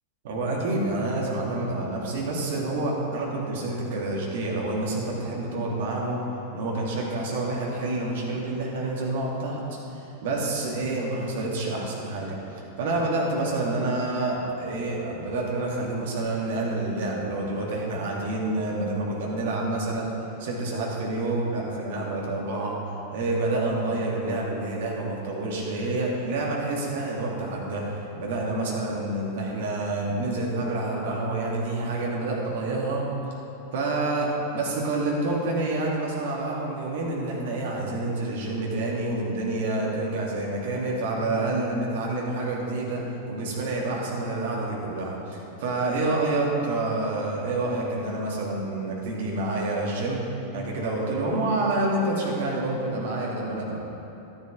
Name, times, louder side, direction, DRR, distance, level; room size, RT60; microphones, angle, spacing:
voice 1, 0.2-6.2 6.5-9.6 9.9-20.1 20.4-22.7 23.1-33.1 33.7-43.0 43.3-50.2 50.5-53.8, right 2 dB, 55° right, -3 dB, 2.2 m, -28 dB
12.0 x 10.5 x 3.8 m, 2.9 s
figure-of-eight pair, 90°, 0 cm